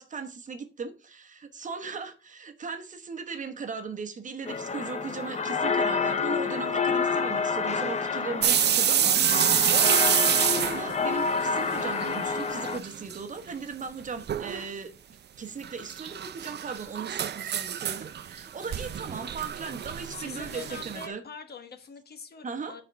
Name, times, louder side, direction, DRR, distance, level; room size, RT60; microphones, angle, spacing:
voice 1, 0.0-14.9 15.4-21.2 22.4-22.7, right 5 dB, 40° right, 1.0 m, -38 dB
sound 1, 4.5-12.8, left 5 dB, 35° left, 0.6 m, -28 dB
sound 2, 8.4-12.2 12.5-13.2 13.5-13.6 14.3-14.6 15.6-21.1, right 9 dB, 60° right, 0.5 m, -27 dB
voice 2, 19.8-22.8, left 4 dB, 55° left, 1.2 m, -44 dB
7.7 x 4.4 x 5.6 m
wide cardioid pair, 165°, 19 cm